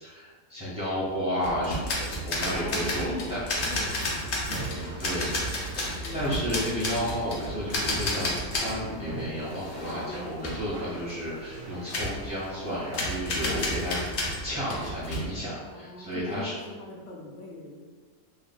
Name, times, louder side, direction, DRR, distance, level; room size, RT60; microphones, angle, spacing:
voice 1, 0.0-3.4 5.0-5.3 5.8-14.0 14.4-16.5, equal, 25° left, -10 dB, 0.6 m, -32 dB
sound 1, 1.4-8.8 9.2-10.2 10.4-10.6 11.9-12.2 12.9-15.2, left 1 dB, 85° left, 0.4 m, -31 dB
voice 2, 2.4-5.4 5.9-6.5 10.0-10.3 11.0-11.2 13.4-14.3 15.7-17.8, left 2 dB, 65° left, -2 dB, 0.8 m, -42 dB
sound 2, 2.9-15.4, right 1 dB, 85° right, 1.4 m, -49 dB
sound 3, 4.1-12.2, right 3 dB, 70° right, 0.8 m, -43 dB
3.2 x 2.1 x 2.3 m, 1.5 s
omnidirectional pair, 1.6 m